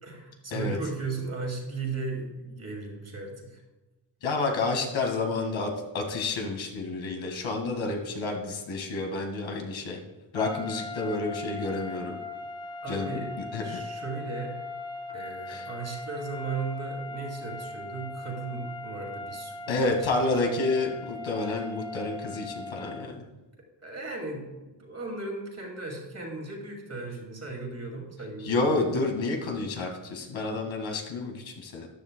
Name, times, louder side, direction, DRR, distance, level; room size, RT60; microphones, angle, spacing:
voice 1, 0.0-3.6 12.8-13.3 13.6-14.6 15.1-20.2 23.8-28.6, right 3 dB, 35° right, 1 dB, 2.2 m, -36 dB
voice 2, 4.2-10.0 10.3-12.2 12.9-13.2 13.5-13.8 15.5-15.6 19.7-23.3 28.4-31.9, left 3 dB, 80° left, 2 dB, 1.9 m, -29 dB
sound 1, 10.3-23.2, left 2 dB, 10° left, 0.3 m, -39 dB
14.0 x 9.8 x 2.2 m, 1.1 s
wide cardioid pair, 140°, 45 cm